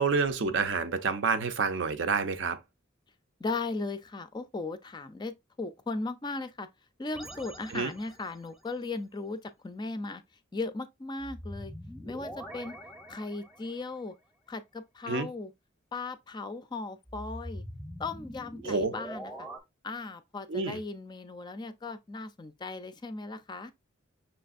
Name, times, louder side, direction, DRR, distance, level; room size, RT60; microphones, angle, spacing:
voice 1, 0.0-2.6 7.7-7.9 15.1-15.3 18.6-18.9 20.5-20.8, right 4 dB, 65° right, 0.6 m, -28 dB
voice 2, 3.4-6.7 7.0-10.2 10.5-11.7 12.0-12.8 13.1-14.1 14.5-15.5 15.9-17.6 18.0-19.5 19.8-23.7, left 3 dB, 20° left, 0.4 m, -37 dB
sound 1, 7.1-8.5 11.2-13.9 17.1-19.6, equal, ahead, 0.7 m, -43 dB
5.8 x 3.2 x 2.4 m
head